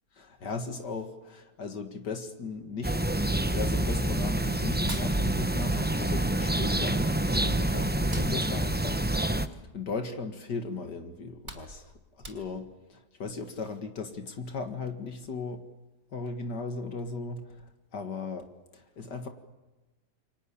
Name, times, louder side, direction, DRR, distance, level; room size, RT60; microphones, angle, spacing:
voice 1, 0.2-3.0 3.2-15.6 16.1-19.3, left 4 dB, 75° left, 6 dB, 2.4 m, -37 dB
sound 1, 2.8-9.5, right 1 dB, 10° right, 0.6 m, -27 dB
Hands, 4.8-6.0 6.2-7.5 7.9-10.3 10.7-10.8 11.2-12.8, right 2 dB, 40° right, 4.9 m, -46 dB
29.5 x 24.5 x 7.1 m, 1.1 s
omnidirectional pair, 1.8 m